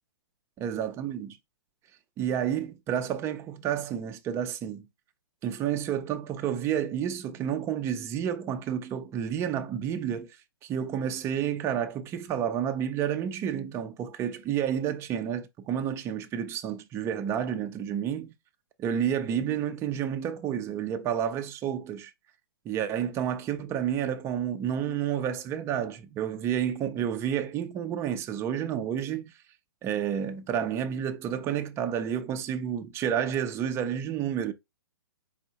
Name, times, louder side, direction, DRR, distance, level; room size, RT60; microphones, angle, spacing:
voice 1, 0.6-1.4 2.2-4.9 5.4-10.3 10.6-18.3 18.8-22.1 22.6-29.3 29.8-34.5, right 9 dB, 20° right, 0.5 m, -30 dB
4.5 x 2.1 x 4.0 m
hypercardioid pair, 135°, 13 cm